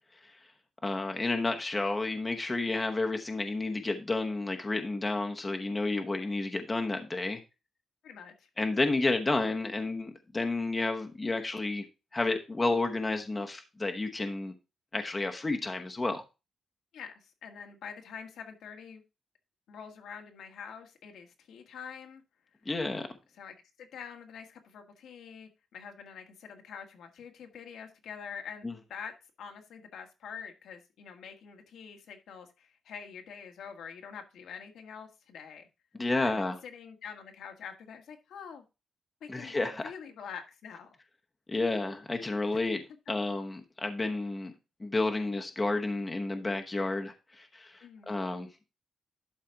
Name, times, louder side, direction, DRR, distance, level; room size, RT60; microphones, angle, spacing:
voice 1, 0.8-7.4 8.6-11.8 12.1-14.5 14.9-16.2 22.6-23.1 28.6-28.7 36.0-36.5 39.3-39.9 41.5-42.8 43.1-44.5 44.8-48.5, left 2 dB, 15° left, 4 dB, 0.9 m, -31 dB
voice 2, 8.0-8.5 16.9-19.0 19.7-22.2 23.4-35.7 36.2-38.6 39.2-39.6 39.8-41.0 47.8-48.3, left 7 dB, 85° left, 4 dB, 1.7 m, -46 dB
11.5 x 4.2 x 4.5 m, 0.27 s
wide cardioid pair, 170°, 0 cm